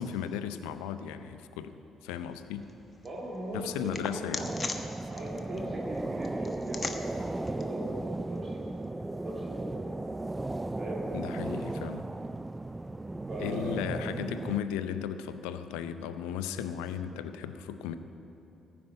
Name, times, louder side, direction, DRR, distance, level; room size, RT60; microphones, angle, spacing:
voice 1, 0.0-2.6 3.5-4.5 11.1-12.1 13.4-18.0, left 9 dB, 85° left, 11 dB, 0.5 m, -36 dB
sound 1, 2.1-8.9, left 3 dB, 35° left, 1.2 m, -42 dB
voice 2, 3.0-4.3 5.0-8.8 9.2-9.9 10.8-11.1 13.3-13.8, right 1 dB, 40° right, -5 dB, 2.3 m, -40 dB
sound 2, 4.4-14.6, right 2 dB, 20° right, 0.3 m, -36 dB
14.5 x 5.9 x 9.2 m, 2.8 s
hypercardioid pair, 50°, 0 cm